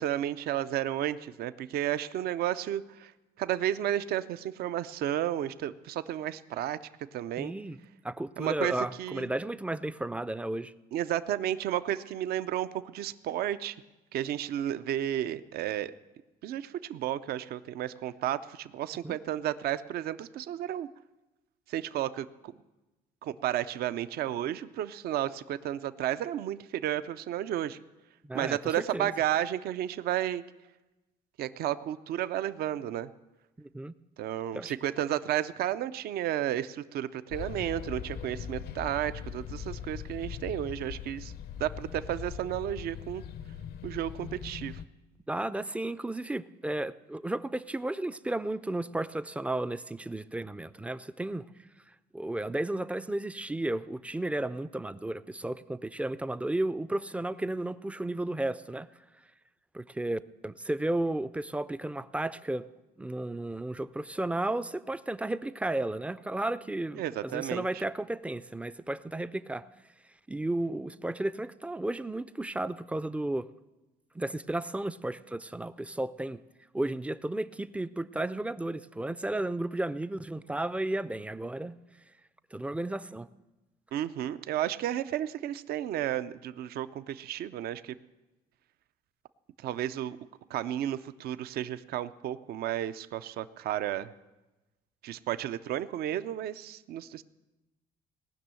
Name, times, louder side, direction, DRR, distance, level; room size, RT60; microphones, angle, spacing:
voice 1, 0.0-3.1 3.4-6.8 7.1-7.5 8.4-8.7 9.0-9.3 10.9-13.8 14.1-15.9 16.4-20.9 21.7-22.5 23.2-27.8 28.3-30.4 31.4-33.1 34.2-41.3 41.6-43.2 43.8-44.8 67.0-67.7 83.9-87.9 89.6-90.2 90.5-94.1 95.0-97.2, right 12 dB, 65° right, 14 dB, 0.5 m, -32 dB
voice 2, 7.4-7.8 8.0-10.7 19.0-19.2 28.2-29.1 33.6-33.9 34.5-34.7 45.3-51.5 52.1-58.9 59.7-62.7 63.0-69.7 70.3-73.5 74.1-76.4 76.7-81.7 82.5-83.3, right 1 dB, 5° right, 14 dB, 0.4 m, -33 dB
sound 1, 37.3-44.9, left 8 dB, 70° left, 0.7 m, -41 dB
18.5 x 6.2 x 8.9 m, 1.1 s
cardioid pair, 110°, 17 cm